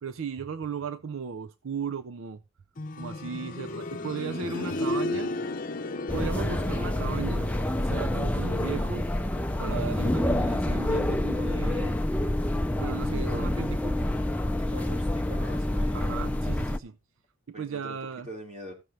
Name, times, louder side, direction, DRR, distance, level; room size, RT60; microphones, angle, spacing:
voice 1, 0.0-2.4 3.0-5.4 6.1-9.1 9.6-12.0 12.8-14.0 15.9-17.0 17.5-18.3, right 5 dB, 75° right, 0.5 m, -36 dB
sound 1, 2.8-13.5 13.8-13.9 14.8-14.9, left 1 dB, 40° left, 0.7 m, -37 dB
sound 2, 4.5-9.1, left 3 dB, 85° left, 0.7 m, -43 dB
sound 3, 6.1-16.8, left 1 dB, 5° left, 0.4 m, -27 dB
voice 2, 14.6-16.2 17.5-18.7, equal, 30° right, 3.0 m, -42 dB
15.5 x 6.4 x 2.8 m
head